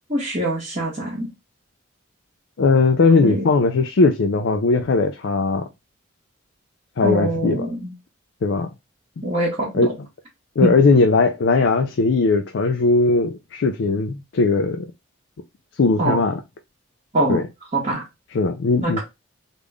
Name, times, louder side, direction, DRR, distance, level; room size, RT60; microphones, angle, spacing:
voice 1, 0.1-1.3 3.2-3.4 7.0-7.9 9.2-9.9 10.6-10.7 16.0-16.2 17.1-17.4 17.7-18.0 18.8-19.0, right 1 dB, 30° right, 1.3 m, -23 dB
voice 2, 2.6-5.7 7.0-7.7 8.4-8.7 9.2-9.3 9.8-9.9 10.6-14.9 15.8-16.4 17.3-17.5 18.3-19.0, left 3 dB, 60° left, 0.4 m, -18 dB
3.5 x 2.5 x 3.2 m
head